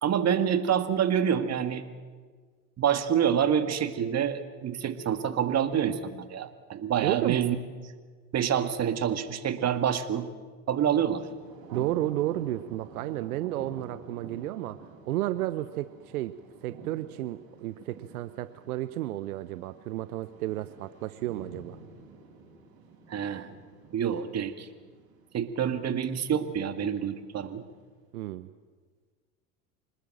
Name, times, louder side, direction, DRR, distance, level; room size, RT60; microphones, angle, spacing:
voice 1, 0.0-1.8 2.8-7.6 8.3-10.3 10.7-11.2 23.1-23.5 23.9-24.7 25.3-27.6, right 8 dB, 35° right, 9 dB, 1.9 m, -27 dB
voice 2, 7.0-7.4 11.7-21.8 28.1-28.5, right 15 dB, 75° right, 13 dB, 0.9 m, -32 dB
Thunder, 10.8-27.8, right 3 dB, 50° right, 7.1 m, -49 dB
25.5 x 20.0 x 7.7 m, 1.5 s
hypercardioid pair, 80°, 45 cm